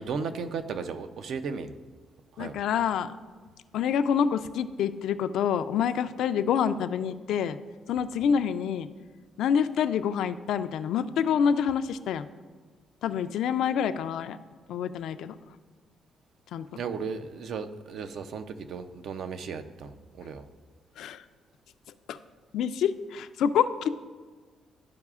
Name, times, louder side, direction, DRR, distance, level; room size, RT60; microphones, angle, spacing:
voice 1, 0.0-1.7 2.3-2.6 16.8-20.4, right 5 dB, 70° right, 9 dB, 0.5 m, -35 dB
voice 2, 2.4-3.1 3.7-7.6 7.9-8.9 9.4-12.3 13.0-14.4 14.7-15.4 16.5-16.6 21.0-21.2 22.1-22.2 22.5-23.9, left 8 dB, 80° left, 11 dB, 0.3 m, -27 dB
12.5 x 4.8 x 2.4 m, 1.4 s
cardioid pair, 90°, 0 cm